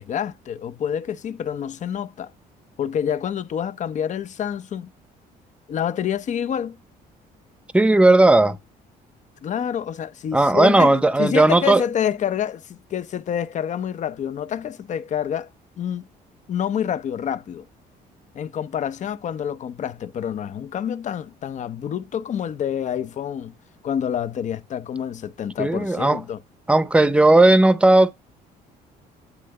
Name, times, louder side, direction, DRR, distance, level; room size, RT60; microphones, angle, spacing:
voice 1, 0.0-2.3 2.8-4.9 5.7-6.8 9.4-15.5 15.8-16.1 16.5-17.7 18.3-23.5 23.8-26.4, left 9 dB, 45° left, 0.7 m, -27 dB
voice 2, 7.7-8.6 10.3-11.8 25.6-26.2 26.7-28.1, right 2 dB, 5° right, 0.8 m, -15 dB
9.9 x 3.6 x 6.6 m
cardioid pair, 110°, 17 cm